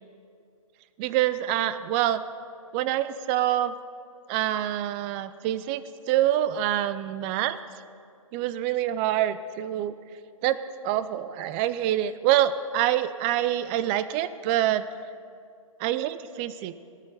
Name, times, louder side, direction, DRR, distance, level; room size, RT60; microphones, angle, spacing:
voice 1, 1.0-2.2 2.7-3.7 4.3-5.8 6.1-7.6 8.3-9.9 10.4-10.6 10.8-14.9 15.8-16.7, right 12 dB, 20° right, 14 dB, 0.4 m, -26 dB
17.5 x 6.5 x 9.4 m, 2.4 s
hypercardioid pair, 140°, 18 cm